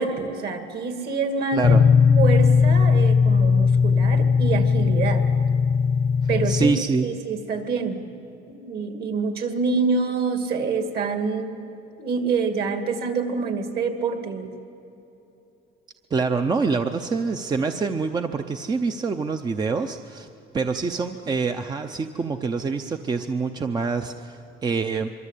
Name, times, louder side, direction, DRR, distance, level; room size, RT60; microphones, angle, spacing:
voice 1, 0.0-1.7 2.2-5.3 6.3-6.7 7.0-8.0 8.5-11.7 12.0-14.5, right 4 dB, 50° right, 6 dB, 2.5 m, -26 dB
voice 2, 1.5-1.8 6.4-7.0 16.1-20.3 20.5-25.1, right 4 dB, 20° right, 7 dB, 0.7 m, -25 dB
sound 1, 1.6-6.7, left 5 dB, 30° left, 0.6 m, -18 dB
24.5 x 24.0 x 8.4 m, 3.0 s
cardioid pair, 160°, 20 cm